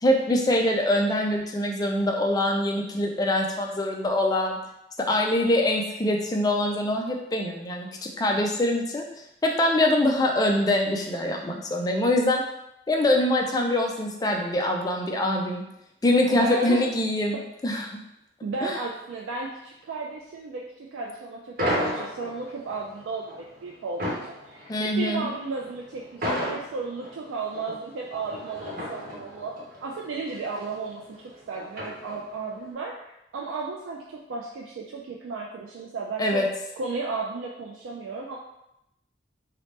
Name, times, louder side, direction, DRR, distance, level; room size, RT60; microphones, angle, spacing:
voice 1, 0.0-4.6 5.0-9.0 9.4-12.4 12.9-15.6 16.0-18.0 18.6-18.8 24.7-25.3 36.2-36.5, left 1 dB, 20° left, 1 dB, 0.3 m, -24 dB
voice 2, 16.3-16.8 18.4-24.2 24.5-29.5 29.8-31.0 31.5-36.5 36.8-38.4, right 3 dB, 90° right, -2 dB, 0.3 m, -34 dB
sound 1, 21.6-32.5, equal, 50° right, 0.8 m, -34 dB
2.8 x 2.0 x 3.1 m, 0.84 s
head